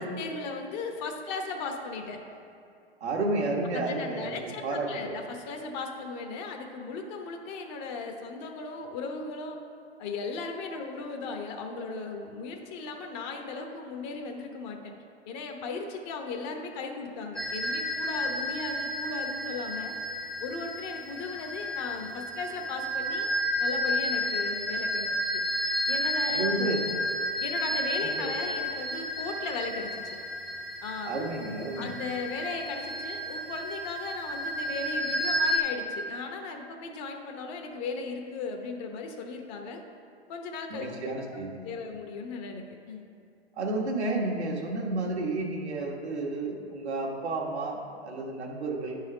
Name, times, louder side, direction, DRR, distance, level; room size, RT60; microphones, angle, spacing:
voice 1, 0.0-2.2 3.7-9.6 10.0-14.9 15.3-19.9 20.4-23.3 23.6-26.5 27.4-30.2 30.8-31.2 31.8-39.8 40.3-41.1 41.6-43.0, left 4 dB, 40° left, 3 dB, 1.0 m, -37 dB
voice 2, 3.0-5.1 26.3-26.8 28.2-28.3 31.1-31.9 40.7-41.6 43.6-49.0, right 2 dB, 85° right, -1 dB, 1.4 m, -31 dB
sound 1, 17.4-35.6, left 1 dB, 5° left, 0.3 m, -32 dB
9.5 x 4.2 x 4.9 m, 2.5 s
hypercardioid pair, 120°, 32 cm